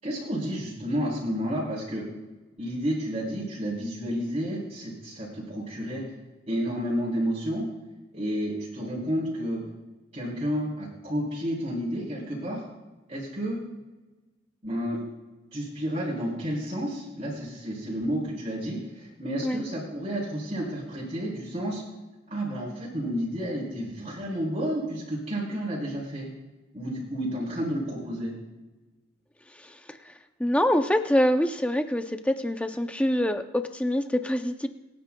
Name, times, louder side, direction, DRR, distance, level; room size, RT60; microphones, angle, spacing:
voice 1, 0.0-2.0 2.6-6.0 6.5-7.7 8.1-9.6 10.1-12.6 13.1-13.6 14.6-15.0 15.5-21.8 22.3-26.3 26.7-28.3, equal, 30° right, -7 dB, 3.5 m, -31 dB
voice 2, 29.5-30.1 30.4-34.7, equal, 5° left, 7 dB, 0.6 m, -25 dB
26.5 x 9.4 x 2.3 m, 1.1 s
head